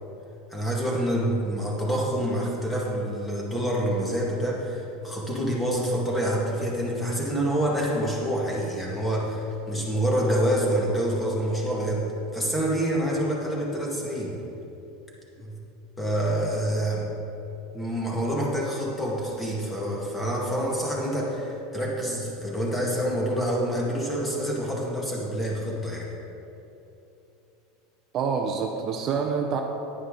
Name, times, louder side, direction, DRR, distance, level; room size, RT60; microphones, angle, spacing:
voice 1, 0.5-12.1 12.3-14.4 15.4-15.5 16.0-17.1 17.7-26.1, right 1 dB, 10° left, -3 dB, 1.9 m, -27 dB
voice 2, 28.1-29.6, right 6 dB, 40° right, 3 dB, 0.7 m, -27 dB
9.9 x 9.9 x 3.9 m, 3.0 s
supercardioid pair, 145°, 0 cm